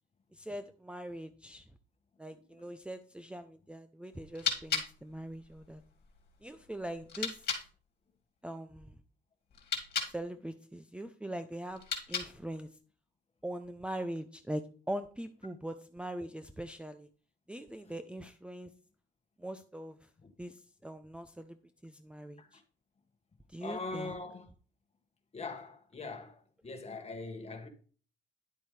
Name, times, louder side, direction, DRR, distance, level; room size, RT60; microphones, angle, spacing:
voice 1, 0.3-1.6 2.2-5.8 6.4-7.5 8.4-8.9 10.0-12.7 13.4-17.1 17.5-18.7 19.4-20.1 20.4-21.6 21.8-22.6 23.5-24.2, right 1 dB, 5° right, 0.6 m, -42 dB
sound 1, 4.1-7.7 9.5-10.2 11.7-12.5, left 6 dB, 50° left, 2.4 m, -37 dB
voice 2, 23.6-24.5 25.3-27.7, left 3 dB, 30° left, 1.7 m, -42 dB
10.5 x 7.7 x 3.3 m
cardioid pair, 90°, 20 cm